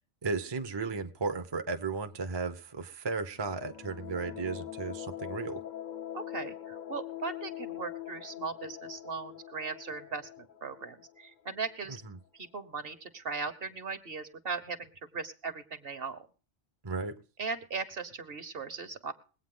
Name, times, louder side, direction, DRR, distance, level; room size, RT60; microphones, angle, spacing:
voice 1, 0.2-5.6 11.9-12.2 16.8-17.2, right 4 dB, 25° right, 8 dB, 0.8 m, -35 dB
sound 1, 3.3-12.0, left 12 dB, 45° left, 0.8 m, -43 dB
voice 2, 6.1-12.0 12.3-16.3 17.4-19.1, right 4 dB, 55° right, 11 dB, 1.4 m, -38 dB
21.5 x 8.7 x 3.8 m, 0.37 s
omnidirectional pair, 1.2 m